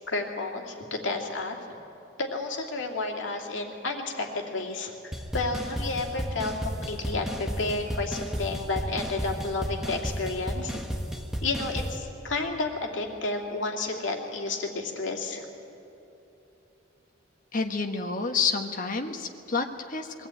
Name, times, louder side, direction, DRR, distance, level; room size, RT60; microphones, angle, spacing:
voice 1, 0.1-1.6 2.2-4.9 5.3-10.8 11.4-15.5, left 3 dB, 70° left, 2 dB, 2.4 m, -31 dB
sound 1, 5.1-12.0, equal, ahead, 1.2 m, -33 dB
voice 2, 17.5-20.3, left 4 dB, 45° left, 4 dB, 1.3 m, -29 dB
22.5 x 15.0 x 9.0 m, 3.0 s
head